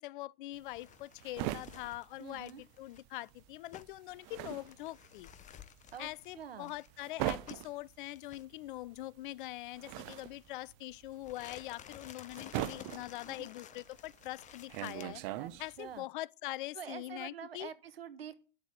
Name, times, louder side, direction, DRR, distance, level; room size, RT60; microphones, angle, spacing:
voice 1, 0.0-2.5 2.8-5.3 6.0-15.2 15.6-17.7, left 16 dB, 60° left, 0.6 m, -43 dB
sound 1, 0.5-3.1 3.3-16.0, right 15 dB, 50° right, 1.1 m, -41 dB
sound 2, 0.8-7.8 8.2-8.4 10.0-10.6 11.1-15.1, left 9 dB, 25° left, 0.9 m, -54 dB
voice 2, 2.2-2.6 5.9-6.1 6.3-6.7 13.2-13.5 15.3-16.0 16.7-18.4, right 8 dB, 85° right, 1.4 m, -46 dB
10.5 x 6.8 x 9.1 m
hypercardioid pair, 105°, 29 cm